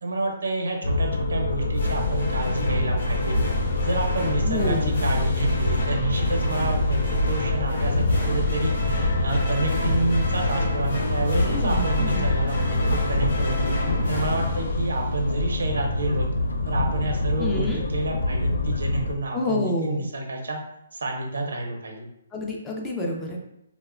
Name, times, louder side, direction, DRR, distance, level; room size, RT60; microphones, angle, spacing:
voice 1, 0.0-3.4 3.8-13.7 14.1-16.3 16.7-20.6 20.9-22.1, right 2 dB, 90° right, 1 dB, 0.6 m, -29 dB
sound 1, 0.8-19.1, left 1 dB, 90° left, 0.3 m, -25 dB
sound 2, 1.8-15.4, left 2 dB, 70° left, 0.7 m, -30 dB
voice 2, 4.4-5.0 11.5-12.3 17.4-17.8 19.3-20.0 22.3-23.4, left 1 dB, 10° left, -2 dB, 0.3 m, -28 dB
2.8 x 2.0 x 2.4 m, 0.81 s
hypercardioid pair, 165°, 0 cm